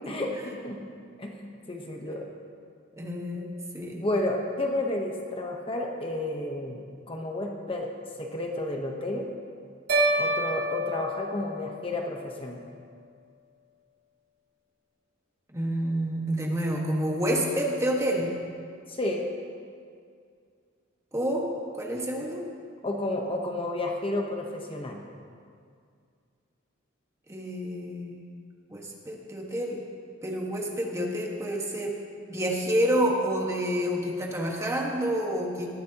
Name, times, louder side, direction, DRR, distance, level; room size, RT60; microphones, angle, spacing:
voice 1, 0.1-0.9 1.2-2.3 4.0-7.9 8.2-9.3 10.2-12.7 18.9-19.3 22.8-25.0, left 1 dB, 30° left, 1 dB, 1.0 m, -31 dB
voice 2, 3.0-4.0 15.5-18.4 21.1-21.5 21.7-22.4 27.3-28.2 28.7-29.8 30.2-31.9 32.3-35.7, equal, 15° right, -1 dB, 1.5 m, -28 dB
sound 1, 9.9-12.2, right 1 dB, 60° right, 3.8 m, -28 dB
19.5 x 13.5 x 2.9 m, 2.3 s
head